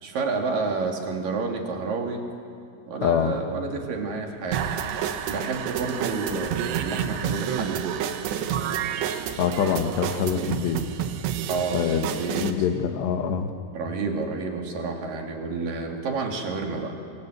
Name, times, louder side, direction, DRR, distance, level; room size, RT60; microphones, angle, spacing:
voice 1, 0.0-2.2 2.9-7.8 11.5-12.4 13.7-17.0, right 4 dB, 55° right, 1 dB, 3.9 m, -30 dB
voice 2, 3.0-3.4 9.4-10.8 11.7-13.5, left 7 dB, 85° left, 6 dB, 3.6 m, -25 dB
sound 1, 4.5-12.5, right 9 dB, 85° right, 3.3 m, -29 dB
27.0 x 23.0 x 8.0 m, 2.4 s
omnidirectional pair, 4.8 m